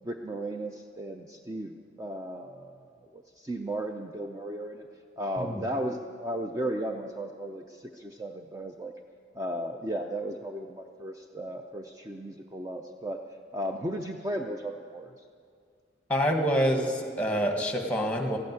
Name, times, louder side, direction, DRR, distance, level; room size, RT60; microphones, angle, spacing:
voice 1, 0.0-2.9 3.1-4.9 5.2-8.9 9.3-13.2 13.5-15.2, right 1 dB, 20° right, 3 dB, 0.5 m, -35 dB
voice 2, 16.1-18.4, equal, 5° left, 3 dB, 1.5 m, -26 dB
14.0 x 9.0 x 9.4 m, 2.2 s
head